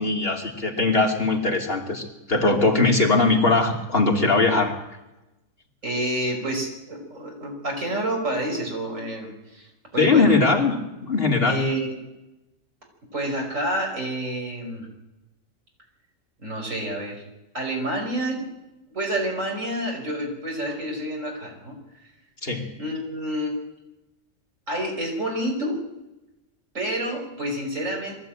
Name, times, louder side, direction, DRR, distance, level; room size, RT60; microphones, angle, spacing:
voice 1, 0.0-4.8 10.0-10.8 11.0-11.7 22.4-22.7, left 3 dB, 45° left, 1 dB, 2.9 m, -20 dB
voice 2, 5.8-10.4 11.5-12.0 13.1-14.9 16.4-17.2 17.5-18.5 18.9-21.8 22.8-23.6 24.7-25.8 26.7-28.1, right 1 dB, 75° right, 0 dB, 5.7 m, -28 dB
22.5 x 14.5 x 8.9 m, 0.98 s
omnidirectional pair, 1.4 m